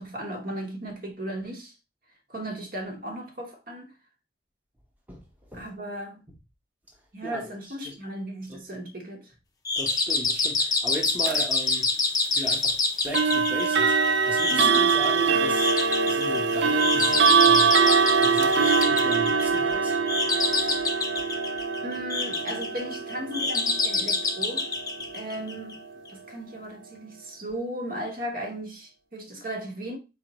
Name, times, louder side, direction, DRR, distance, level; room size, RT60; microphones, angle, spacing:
voice 1, 0.0-1.7 2.3-3.9 5.5-6.2 7.1-9.3 14.5-14.9 21.8-24.8 25.1-30.0, right 1 dB, 50° right, 1.3 m, -36 dB
sound 1, 9.6-25.7, left 3 dB, 20° left, 0.6 m, -27 dB
voice 2, 9.8-11.9 12.3-12.8 13.0-14.0 14.2-15.7 16.1-17.7 18.2-20.0 20.5-20.7, equal, 10° right, 0.9 m, -36 dB
sound 2, 11.2-11.5 13.1-26.0, right 5 dB, 70° right, 0.5 m, -24 dB
4.4 x 3.6 x 3.0 m
head